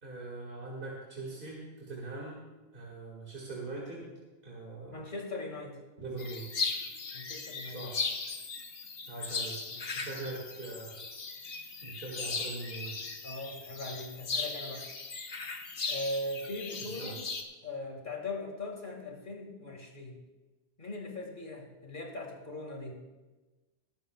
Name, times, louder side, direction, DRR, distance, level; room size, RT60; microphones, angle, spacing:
voice 1, 0.0-2.4 2.7-4.1 4.4-5.1 6.0-6.5 7.7-8.1 9.1-9.6 9.9-11.0 11.8-13.0 16.8-17.2, right 2 dB, 55° right, -4 dB, 2.3 m, -42 dB
voice 2, 4.9-5.8 7.1-7.8 9.7-9.9 13.2-14.9 15.9-17.2 17.6-20.2 20.8-23.0, left 2 dB, 55° left, 1 dB, 2.2 m, -40 dB
sound 1, 6.2-17.4, left 4 dB, 70° left, 1.4 m, -38 dB
21.0 x 12.0 x 2.3 m, 1.2 s
omnidirectional pair, 1.1 m